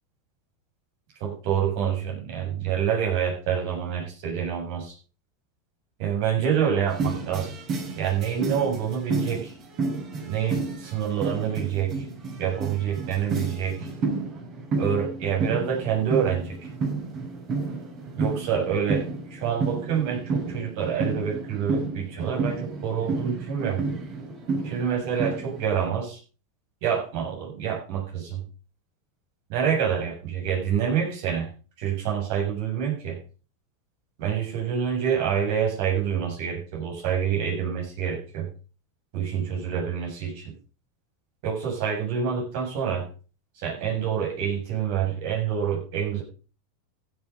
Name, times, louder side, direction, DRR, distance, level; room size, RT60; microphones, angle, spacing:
voice 1, 1.2-4.9 6.0-7.5 8.0-9.5 10.3-12.0 12.4-13.9 14.8-16.6 18.1-19.0 19.3-23.8 24.6-26.2 26.8-28.4 29.5-31.5 31.8-33.2 34.2-38.5 39.1-40.5 41.4-43.1 43.6-46.2, right 8 dB, 60° right, -1 dB, 7.3 m, -27 dB
sound 1, 6.9-25.8, right 3 dB, 45° right, 6.5 m, -31 dB
15.5 x 8.4 x 5.3 m, 0.37 s
hypercardioid pair, 100°, 0 cm